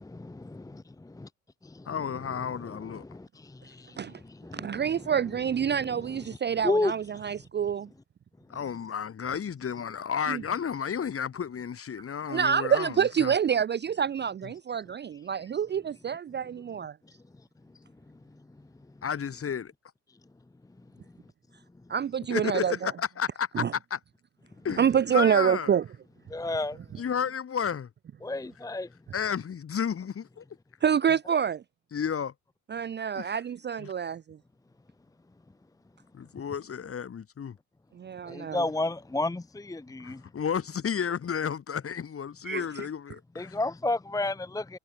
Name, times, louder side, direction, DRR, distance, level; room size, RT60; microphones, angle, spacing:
voice 1, 0.2-0.6 1.2-1.3 4.6-4.7 6.6-6.9 26.3-26.8 28.2-28.9 38.3-40.2 43.4-44.8, left 2 dB, 10° left, 1.1 m, -30 dB
voice 2, 1.9-3.0 8.5-13.3 19.0-19.7 22.3-23.6 23.9-24.0 24.6-25.7 27.0-27.9 29.1-30.4 31.9-32.3 33.2-33.3 33.8-33.9 36.1-37.6 40.0-43.6, left 7 dB, 35° left, 2.3 m, -32 dB
voice 3, 4.5-7.9 10.3-10.4 12.3-17.0 21.9-22.9 23.5-23.7 24.8-25.8 30.8-31.6 32.7-34.4 37.9-38.7 42.4-42.9, right 8 dB, 25° right, 0.6 m, -27 dB
hypercardioid pair, 65°, 40 cm